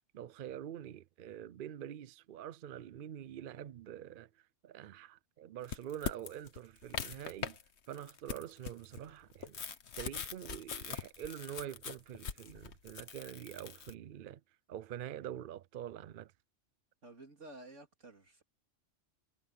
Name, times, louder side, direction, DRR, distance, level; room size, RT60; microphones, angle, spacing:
voice 1, 0.1-4.3 4.6-7.6 7.9-9.6 10.0-14.4 14.7-16.3, right 10 dB, 60° right, 0.6 m, -45 dB
sound 1, 5.6-7.6 7.9-13.9, left 7 dB, 65° left, 1.4 m, -42 dB
voice 2, 17.0-18.4, right 2 dB, 80° right, 3.3 m, -52 dB
omnidirectional pair, 1.2 m